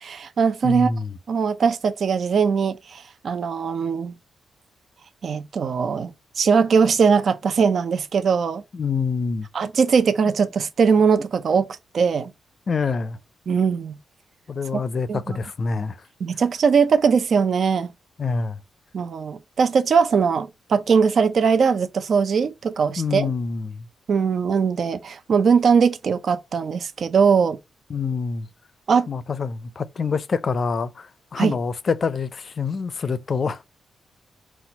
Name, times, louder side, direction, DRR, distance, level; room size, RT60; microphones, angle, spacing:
voice 1, 0.0-0.9 1.3-4.1 5.2-8.6 9.5-11.7 11.9-12.3 13.5-14.0 15.1-15.4 16.2-17.9 18.9-23.3 24.1-27.6 28.9-29.1 31.4-31.5, right 6 dB, 60° right, 0.5 m, -20 dB
voice 2, 0.6-1.1 8.7-9.5 12.7-13.2 14.5-16.0 18.2-18.6 23.0-23.9 27.9-28.5 29.1-33.7, left 5 dB, 50° left, 0.4 m, -26 dB
4.2 x 2.3 x 4.0 m
cardioid pair, 80°, 0 cm